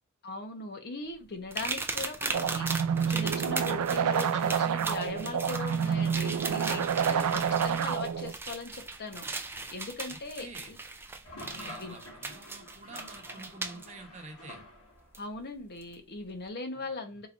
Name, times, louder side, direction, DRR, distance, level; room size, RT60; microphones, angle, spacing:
voice 1, 0.2-2.7 3.1-10.8 11.8-12.0 15.2-17.3, left 3 dB, 50° left, 4 dB, 0.9 m, -40 dB
sound 1, 1.5-13.9 15.1-15.2 15.8-15.9, right 3 dB, 10° right, 0.4 m, -38 dB
sound 2, 2.3-8.3, right 7 dB, 85° right, 0.4 m, -28 dB
voice 2, 10.1-10.7 11.4-14.6 16.7-16.9, right 3 dB, 35° right, 1 dB, 1.0 m, -48 dB
sound 3, 11.2-15.2, left 1 dB, 80° left, 1.3 m, -47 dB
4.3 x 3.0 x 2.5 m, 0.29 s
head